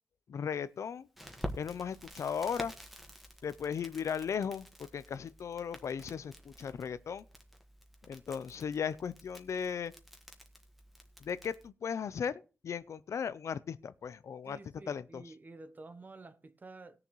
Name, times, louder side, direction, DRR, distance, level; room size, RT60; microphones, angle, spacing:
voice 1, 0.3-1.1 1.5-2.7 3.4-4.7 4.9-7.2 8.1-9.9 11.2-14.6 14.9-15.2, left 7 dB, 80° left, 0.5 m, -36 dB
Crackle, 1.2-11.7, equal, 5° right, 1.5 m, -48 dB
voice 2, 14.4-17.0, right 3 dB, 35° right, 0.8 m, -50 dB
19.5 x 6.8 x 3.1 m
wide cardioid pair, 105°, 5 cm